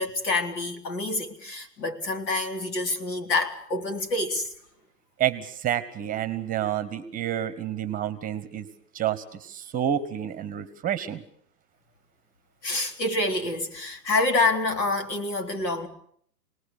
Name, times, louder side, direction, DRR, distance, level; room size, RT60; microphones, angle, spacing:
voice 1, 0.0-4.5 12.6-15.9, left 2 dB, 80° left, 3.8 m, -27 dB
voice 2, 5.2-8.7 8.9-11.2, right 10 dB, 15° right, 1.2 m, -29 dB
27.5 x 19.5 x 6.9 m
hypercardioid pair, 135°, 50 cm